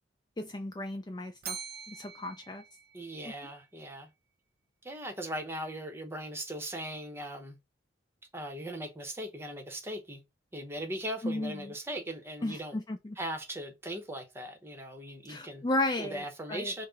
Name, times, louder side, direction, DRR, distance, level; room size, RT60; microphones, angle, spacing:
voice 1, 0.4-1.6 1.9-2.6 3.2-3.3 11.2-11.7 12.4-13.2 15.3-16.7, left 1 dB, 20° left, 0.4 m, -34 dB
Bell, 1.4-3.6, right 7 dB, 55° right, 0.5 m, -44 dB
voice 2, 2.9-4.1 4.8-7.6 8.3-10.2 10.5-12.8 13.2-15.6 16.0-16.9, right 1 dB, 15° right, 0.9 m, -39 dB
5.8 x 2.1 x 4.0 m
head